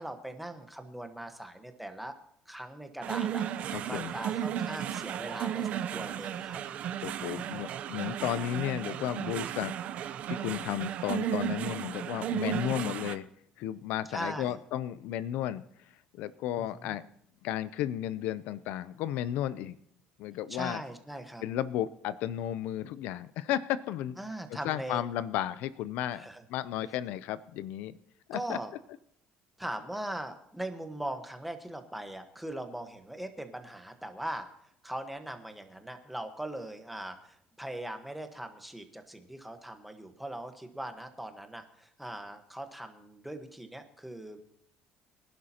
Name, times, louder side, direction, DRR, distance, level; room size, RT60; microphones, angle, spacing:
voice 1, 0.0-2.1 2.5-6.6 7.3-7.6 14.1-14.6 16.6-16.9 20.5-21.4 24.2-25.0 26.1-26.4 28.3-28.7 29.6-34.5 34.8-44.4, right 1 dB, 5° right, 6 dB, 1.2 m, -40 dB
sound 1, 3.0-13.2, right 10 dB, 50° right, 0.7 m, -34 dB
voice 2, 3.7-4.1 7.0-9.7 10.0-13.3 13.6-17.1 17.4-19.8 20.2-20.8 21.4-24.2 24.6-28.0 28.3-28.6, left 12 dB, 75° left, 16 dB, 0.5 m, -34 dB
23.5 x 11.0 x 2.9 m, 0.70 s
cardioid pair, 135°, 3 cm